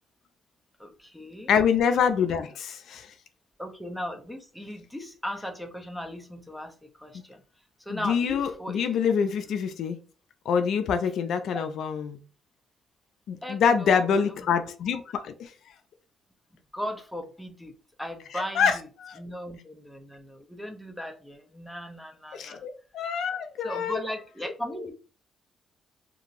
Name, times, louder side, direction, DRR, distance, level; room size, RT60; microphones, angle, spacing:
voice 1, 0.8-1.5 3.6-7.4 7.8-9.0 11.5-11.6 13.4-14.4 14.7-14.8 16.7-18.9 19.2-22.6 23.6-24.9, equal, 5° left, 0.6 m, -37 dB
voice 2, 1.5-3.1 7.9-10.0 10.5-12.2 13.3-15.5 18.3-19.2 22.3-24.0, left 7 dB, 75° left, 0.3 m, -26 dB
2.9 x 2.6 x 2.5 m
cardioid pair, 90°, 0 cm